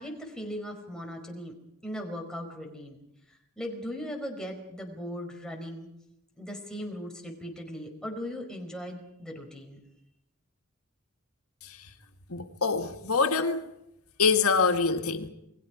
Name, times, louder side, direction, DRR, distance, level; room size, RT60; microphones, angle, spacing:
voice 1, 0.0-1.5 1.8-5.9 6.4-9.8, equal, 5° left, 4.8 m, -38 dB
voice 2, 12.3-13.7 14.2-15.3, left 4 dB, 85° left, 1.9 m, -25 dB
29.0 x 21.0 x 5.0 m
head